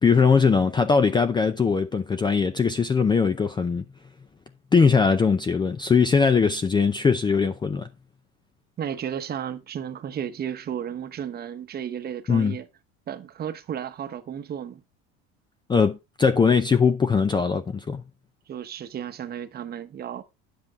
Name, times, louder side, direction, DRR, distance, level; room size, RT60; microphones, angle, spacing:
voice 1, 0.0-3.8 4.7-7.9 12.3-12.6 15.7-18.0, left 5 dB, 15° left, 0.6 m, -20 dB
voice 2, 8.8-12.7 13.1-14.8 18.5-20.2, right 9 dB, 30° right, 1.0 m, -33 dB
10.5 x 7.7 x 3.6 m
cardioid pair, 150°, 32 cm